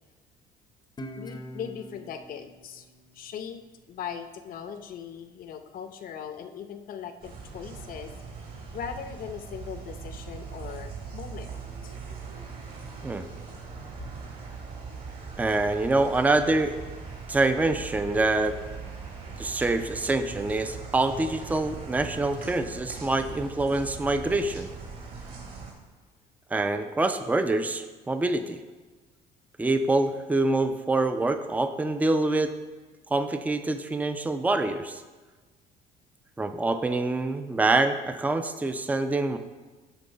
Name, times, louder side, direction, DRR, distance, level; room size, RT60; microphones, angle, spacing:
Guitar, 1.0-4.2, equal, 25° left, 0.7 m, -44 dB
voice 1, 1.2-2.9 3.1-3.6 3.9-8.1 8.7-11.5 11.8-12.0 17.1-17.4 18.1-18.2 19.0-19.6, left 8 dB, 55° left, 9 dB, 0.7 m, -40 dB
sound 1, 7.2-25.7, right 5 dB, 60° right, 2.6 m, -40 dB
voice 2, 15.4-16.8 17.3-18.6 19.4-24.7 26.5-28.6 29.6-32.5 33.1-35.0 36.4-39.4, right 2 dB, 10° right, 8 dB, 0.5 m, -25 dB
10.5 x 3.8 x 5.4 m, 1.3 s
cardioid pair, 110°, 17 cm